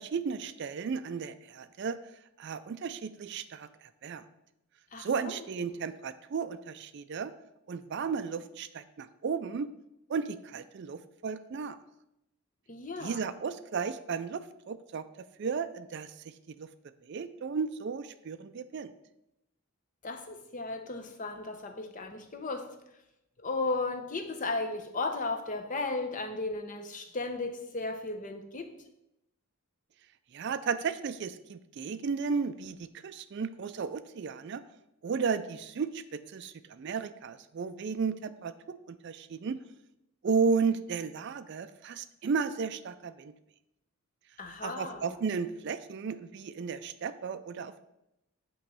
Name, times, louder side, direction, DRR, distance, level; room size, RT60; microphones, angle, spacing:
voice 1, 0.0-2.0 2.4-4.2 5.0-7.3 7.7-9.7 10.1-11.8 13.0-15.1 15.4-16.7 17.1-18.9 30.3-34.6 35.0-39.6 40.2-43.3 44.6-47.8, right 5 dB, 50° right, 13 dB, 0.3 m, -34 dB
voice 2, 4.9-5.4 12.7-13.2 20.0-22.7 23.4-28.7 44.4-45.2, left 3 dB, 35° left, 6 dB, 0.8 m, -35 dB
8.7 x 3.1 x 6.1 m, 0.86 s
head